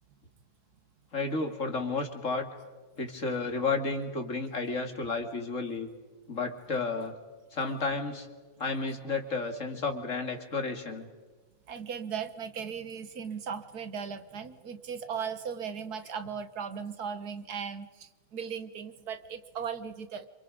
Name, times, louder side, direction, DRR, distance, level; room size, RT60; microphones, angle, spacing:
voice 1, 1.1-2.5 3.0-5.9 6.3-7.1 7.5-8.3 8.6-11.1, left 3 dB, 55° left, 4 dB, 2.8 m, -32 dB
voice 2, 11.7-20.3, right 7 dB, 85° right, 10 dB, 1.8 m, -37 dB
27.5 x 27.5 x 5.3 m, 1.3 s
omnidirectional pair, 1.6 m